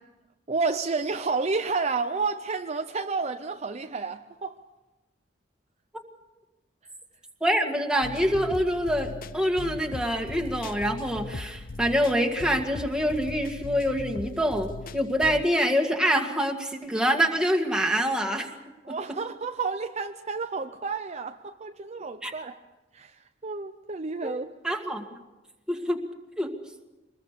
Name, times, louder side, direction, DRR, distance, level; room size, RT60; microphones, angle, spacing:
voice 1, 0.5-4.6 18.9-22.6 22.9-24.5, right 4 dB, 35° right, 0.7 m, -30 dB
voice 2, 7.4-18.5 18.9-19.0 22.2-22.3 24.2-24.3 24.6-25.1 25.7-26.0 26.4-26.5, equal, 5° right, 2.0 m, -25 dB
sound 1, 8.0-15.4, left 3 dB, 50° left, 0.7 m, -39 dB
24.5 x 21.0 x 6.8 m
head